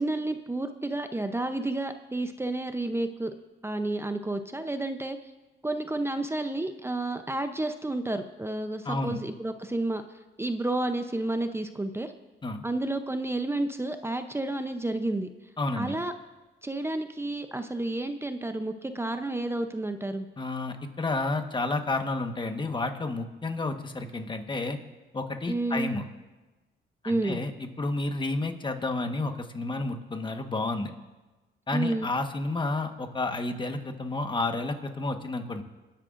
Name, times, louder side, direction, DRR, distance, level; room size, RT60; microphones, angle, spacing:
voice 1, 0.0-3.3 3.6-5.2 5.6-10.0 10.4-12.1 12.6-15.3 15.8-16.1 16.6-20.3 25.5-25.9 27.1-27.4 31.7-32.1, right 2 dB, 10° right, 8 dB, 0.7 m, -30 dB
voice 2, 8.8-9.2 12.4-12.6 15.6-16.0 20.4-24.8 25.1-26.0 27.0-30.9 31.7-35.6, left 2 dB, 25° left, 6 dB, 1.4 m, -31 dB
26.0 x 10.0 x 2.6 m, 1.1 s
cardioid pair, 90°, 20 cm